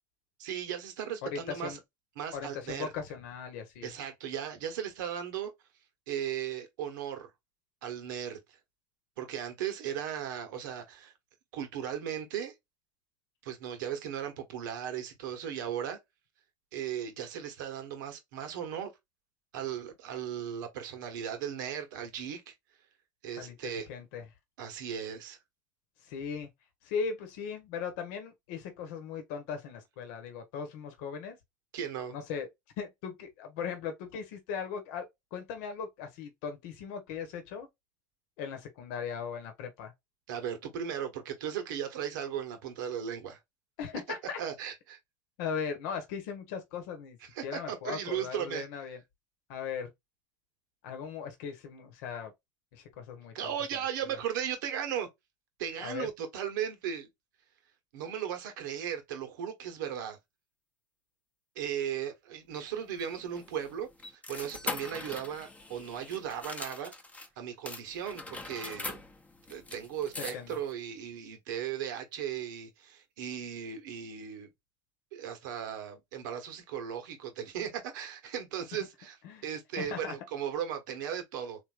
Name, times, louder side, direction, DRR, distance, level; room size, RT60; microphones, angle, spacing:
voice 1, 0.4-1.8 2.2-2.9 3.8-5.5 6.1-7.3 7.8-8.6 9.2-11.1 11.5-12.5 13.4-16.0 16.7-18.9 19.5-22.5 23.2-23.9 24.6-25.4 31.7-32.2 40.3-43.4 44.4-45.0 47.3-48.7 53.3-55.1 55.6-57.1 57.9-60.2 61.5-66.9 67.4-69.0 69.5-74.5 75.1-79.2 79.4-81.6, right 9 dB, 80° right, 1.1 m, -37 dB
voice 2, 1.2-1.8 2.3-3.9 23.4-24.3 26.0-26.5 26.8-31.4 32.1-32.5 32.8-37.7 38.4-39.9 43.8-44.4 45.4-47.2 47.4-49.0 49.5-49.9 50.8-52.3 52.7-53.5 55.8-56.1 70.2-70.6 79.2-79.4 79.8-80.1, left 6 dB, 70° left, 1.0 m, -38 dB
sound 1, 62.5-67.3 67.7-70.7, left 3 dB, 15° left, 0.7 m, -42 dB
3.4 x 2.6 x 2.4 m
hypercardioid pair, 90°, 10 cm